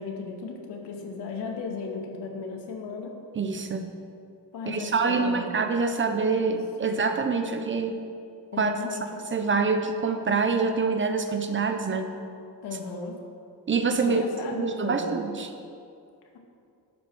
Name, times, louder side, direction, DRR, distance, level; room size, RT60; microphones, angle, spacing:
voice 1, 0.0-3.1 4.5-5.6 6.5-6.9 8.5-9.0 12.6-13.2 14.0-15.2, left 4 dB, 80° left, 1 dB, 2.1 m, -35 dB
voice 2, 3.4-3.9 4.7-8.0 8.6-8.7 9.3-12.1 13.7-14.2 14.6-15.5, right 4 dB, 30° right, 6 dB, 0.9 m, -25 dB
12.0 x 9.1 x 6.2 m, 2.4 s
cardioid pair, 145°, 40 cm